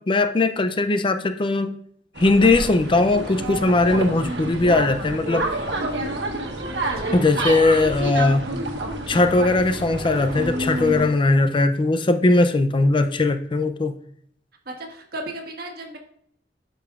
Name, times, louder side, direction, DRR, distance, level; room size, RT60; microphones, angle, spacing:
voice 1, 0.0-1.8 2.2-5.5 7.1-8.5 9.1-13.9, left 2 dB, 30° left, 9 dB, 0.4 m, -19 dB
sound 1, 2.2-11.1, right 1 dB, 80° right, 1.3 m, -28 dB
voice 2, 7.0-7.4 14.6-16.0, right 1 dB, 60° right, 1 dB, 1.6 m, -36 dB
12.0 x 5.3 x 2.4 m, 0.65 s
head